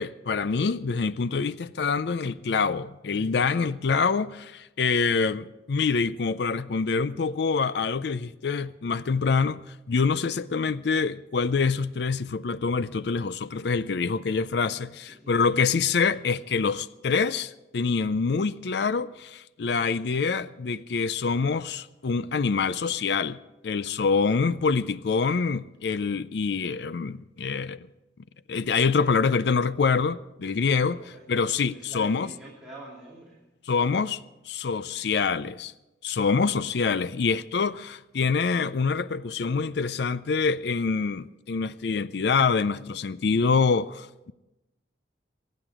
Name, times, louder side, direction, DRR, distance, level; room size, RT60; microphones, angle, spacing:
voice 1, 0.0-23.4 23.6-27.8 28.5-32.3 33.7-34.2 34.5-35.7 36.0-44.3, left 5 dB, 60° left, 0.4 m, -26 dB
voice 2, 31.0-31.5 31.7-34.1, right 2 dB, ahead, 2.8 m, -47 dB
24.5 x 9.5 x 4.9 m
head